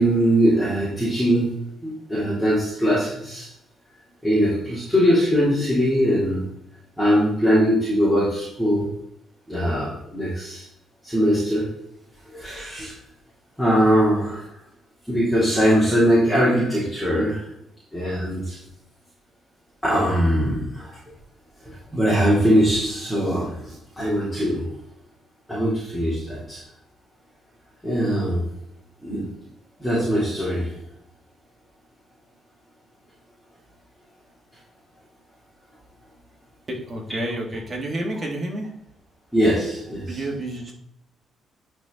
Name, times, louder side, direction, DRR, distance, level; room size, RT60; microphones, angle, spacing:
voice 1, 0.0-3.5 4.2-6.5 7.0-8.9 9.5-10.7 11.0-11.8 12.3-13.0 13.6-14.6 15.1-17.5 17.9-18.6 19.8-21.0 21.6-24.7 25.5-26.6 27.8-28.5 29.0-29.3 29.8-30.8 39.3-40.2, equal, 5° left, -8 dB, 3.0 m, -21 dB
voice 2, 36.7-38.7 40.1-40.7, right 1 dB, 30° right, 0 dB, 2.3 m, -29 dB
10.0 x 4.5 x 3.9 m, 0.73 s
cardioid pair, 90°, 0 cm